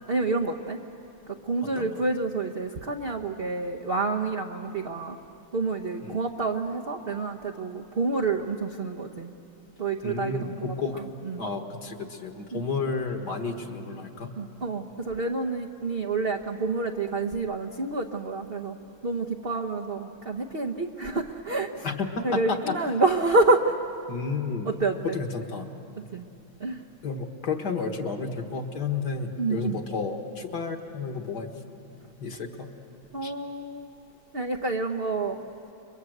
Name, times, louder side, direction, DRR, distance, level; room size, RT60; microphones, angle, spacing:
voice 1, 0.1-0.8 1.3-5.2 5.5-9.3 9.8-11.4 12.5-12.6 14.4-18.8 19.0-21.9 22.2-23.8 24.6-25.2 26.1-26.2 26.6-26.8 29.4-29.8 33.1-33.9 34.3-35.4, right 3 dB, 45° right, 1 dB, 0.7 m, -28 dB
voice 2, 1.6-2.0 6.0-6.2 10.0-11.0 11.4-14.3 21.8-22.8 24.1-24.7 25.0-25.7 27.0-31.5 32.2-32.7 33.2-33.3, left 4 dB, 55° left, 5 dB, 2.0 m, -31 dB
30.0 x 22.5 x 8.0 m, 2.7 s
omnidirectional pair, 2.3 m